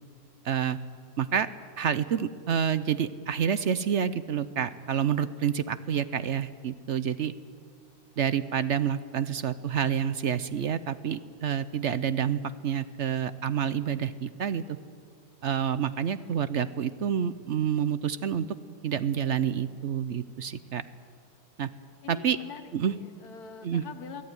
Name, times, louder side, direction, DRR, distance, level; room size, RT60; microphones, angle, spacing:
voice 1, 0.4-0.8 1.2-1.5 1.8-7.3 8.2-14.6 15.4-18.5 18.8-20.9 21.6-21.7 22.1-22.4 22.7-22.9 23.6-23.8, right 8 dB, 60° right, 14 dB, 0.9 m, -28 dB
voice 2, 22.0-22.6 22.9-24.2, left 7 dB, 85° left, 8 dB, 1.8 m, -43 dB
23.5 x 15.5 x 9.6 m, 2.1 s
omnidirectional pair, 1.6 m